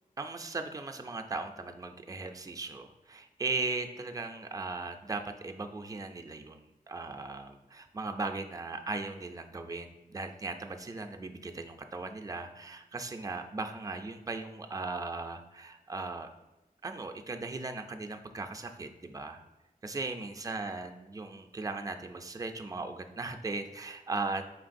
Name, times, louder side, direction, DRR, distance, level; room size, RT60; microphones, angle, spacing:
voice 1, 0.2-16.3 16.8-19.4 19.8-24.5, right 3 dB, 25° right, 5 dB, 0.3 m, -38 dB
4.6 x 3.5 x 2.5 m, 0.97 s
wide cardioid pair, 75°, 15 cm